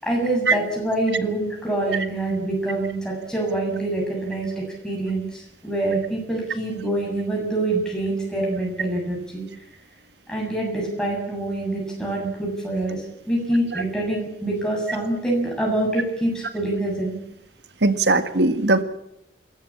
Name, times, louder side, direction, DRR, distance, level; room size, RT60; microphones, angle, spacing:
voice 1, 0.0-9.4 10.3-17.2, right 2 dB, 5° left, -2 dB, 7.3 m, -25 dB
voice 2, 17.8-18.8, right 3 dB, 70° right, 10 dB, 1.8 m, -19 dB
28.5 x 14.0 x 8.7 m, 0.78 s
head